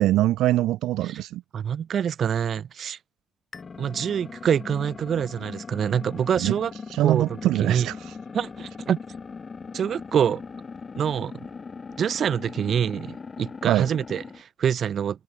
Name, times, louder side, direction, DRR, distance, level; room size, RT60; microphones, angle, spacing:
voice 1, 0.0-1.4 6.4-6.5 6.9-8.1 13.7-13.9, right 15 dB, 90° right, 0.4 m, -23 dB
voice 2, 1.5-3.0 3.8-6.7 7.0-7.9 8.3-9.0 9.7-10.4 11.0-11.5 12.0-15.2, right 8 dB, 60° right, 1.7 m, -26 dB
sound 1, 3.5-14.4, left 5 dB, 35° left, 4.4 m, -39 dB
cardioid pair, 90°, 0 cm